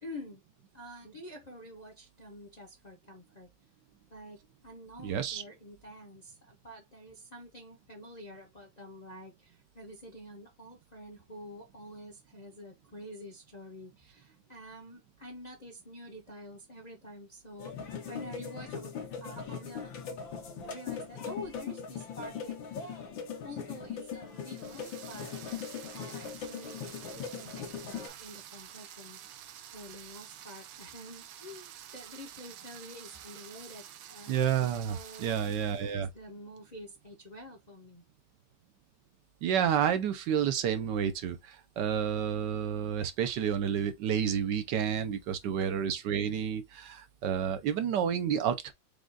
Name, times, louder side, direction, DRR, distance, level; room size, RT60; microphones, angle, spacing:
voice 1, 0.0-0.4 0.7-3.5 4.1-17.8 18.1-18.9 19.2-19.9 20.6-23.1 23.4-29.2 29.7-38.0 45.4-45.8, left 1 dB, 35° left, 0.6 m, -48 dB
voice 2, 5.0-5.4 34.3-36.1 39.4-48.7, right 8 dB, 70° right, 1.2 m, -30 dB
sound 1, 17.6-28.1, left 6 dB, 80° left, 1.8 m, -40 dB
sound 2, 24.3-36.0, right 10 dB, 90° right, 1.4 m, -49 dB
4.9 x 2.4 x 3.8 m
omnidirectional pair, 2.1 m